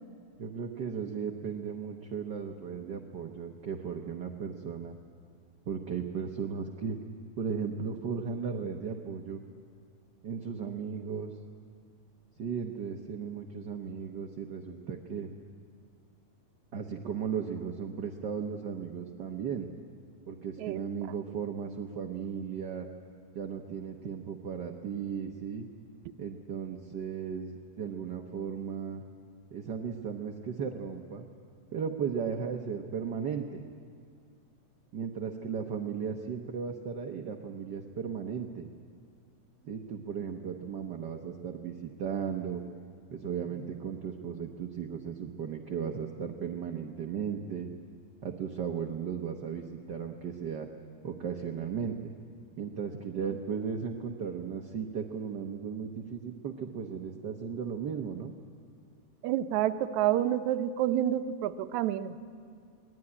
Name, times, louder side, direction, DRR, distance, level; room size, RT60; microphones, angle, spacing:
voice 1, 0.4-4.9 5.7-7.0 7.4-9.4 10.2-11.3 12.4-15.3 16.7-19.7 20.3-22.9 23.3-25.7 26.2-29.0 29.5-31.2 31.7-33.6 34.9-38.7 39.7-42.6 43.1-47.7 48.2-50.7 51.0-51.9 52.6-58.3, right 7 dB, 60° right, 3 dB, 1.1 m, -36 dB
voice 2, 59.2-62.2, right 11 dB, 80° right, 10 dB, 2.1 m, -28 dB
24.0 x 19.0 x 9.8 m, 2.3 s
omnidirectional pair, 3.4 m